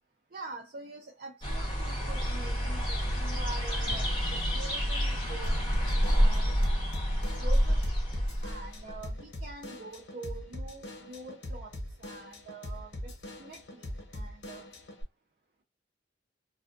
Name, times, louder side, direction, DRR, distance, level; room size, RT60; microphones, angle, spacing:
voice 1, 0.3-5.7 6.1-6.5 7.4-7.8 8.4-13.1 13.4-13.8 14.1-14.7, right 3 dB, 50° right, 0.5 m, -45 dB
sound 1, 1.4-9.0, equal, 25° left, 0.9 m, -28 dB
Drum kit / Drum, 5.4-15.0, left 1 dB, 80° left, 0.9 m, -42 dB
2.4 x 2.3 x 2.4 m
head